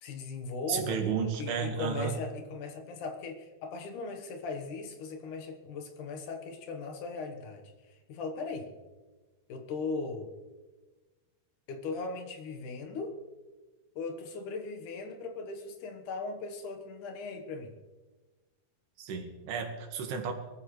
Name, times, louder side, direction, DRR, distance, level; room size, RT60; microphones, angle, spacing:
voice 1, 0.0-8.7 9.5-10.3 11.7-13.2 14.0-17.7, left 4 dB, 60° left, 5 dB, 2.4 m, -38 dB
voice 2, 0.7-2.1 19.0-20.3, right 6 dB, 75° right, 4 dB, 3.6 m, -32 dB
23.0 x 14.0 x 3.2 m, 1.3 s
omnidirectional pair, 4.7 m